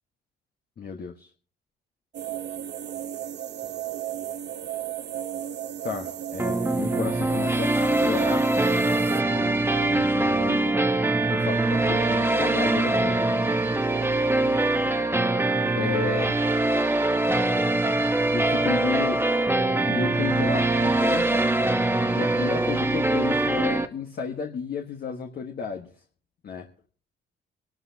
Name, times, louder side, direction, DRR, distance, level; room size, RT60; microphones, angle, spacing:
voice 1, 0.8-1.3 5.8-8.5 9.1-13.2 14.4-14.8 15.7-16.4 18.3-19.2 19.9-21.4 22.1-25.9 26.4-26.7, left 6 dB, 50° left, 3 dB, 1.5 m, -33 dB
sound 1, 2.1-9.2, right 10 dB, 60° right, 0.7 m, -34 dB
sound 2, 6.4-23.9, right 2 dB, 10° right, 1.1 m, -23 dB
25.5 x 12.5 x 2.9 m, 0.42 s
cardioid pair, 90°, 20 cm